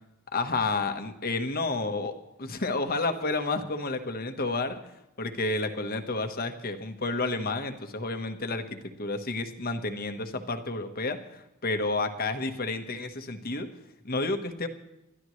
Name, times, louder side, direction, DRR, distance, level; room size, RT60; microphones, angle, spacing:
voice 1, 0.3-4.8 5.2-13.7 14.0-14.7, left 3 dB, 45° left, 7 dB, 1.3 m, -30 dB
29.0 x 12.5 x 3.2 m, 0.88 s
head